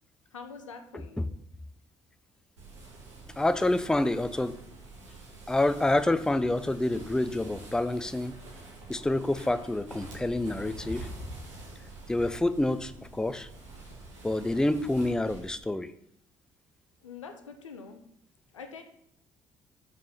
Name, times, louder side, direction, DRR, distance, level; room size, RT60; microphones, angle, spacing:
voice 1, 0.3-1.3 17.0-18.0 18.5-18.8, left 5 dB, 85° left, 6 dB, 0.6 m, -44 dB
sound 1, 2.6-15.5, right 2 dB, 85° right, 1.6 m, -46 dB
voice 2, 3.4-4.6 5.5-8.4 8.9-11.1 12.1-13.5 14.2-15.9, left 2 dB, 5° left, 13 dB, 0.4 m, -27 dB
5.3 x 4.9 x 5.6 m, 0.73 s
figure-of-eight pair, 45°, 16 cm